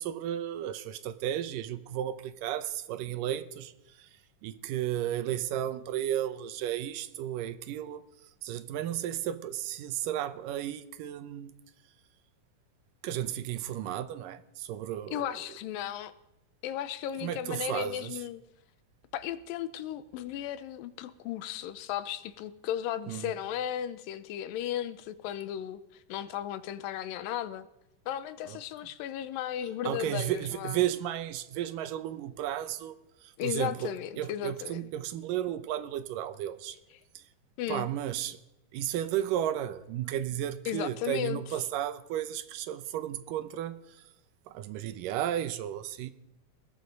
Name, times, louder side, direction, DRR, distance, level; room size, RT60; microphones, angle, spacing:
voice 1, 0.0-4.1 4.4-8.0 8.4-11.5 13.0-15.2 17.2-18.2 23.1-23.3 28.5-28.6 29.8-36.8 37.2-37.3 37.7-38.4 38.7-44.0 44.5-46.1, right 11 dB, 80° right, 2.4 m, -33 dB
voice 2, 15.1-16.1 16.6-18.4 19.1-27.7 28.1-30.8 33.4-34.9 37.6-37.9 40.7-41.4, left 11 dB, 85° left, 2.5 m, -35 dB
19.5 x 14.0 x 5.3 m
omnidirectional pair, 3.9 m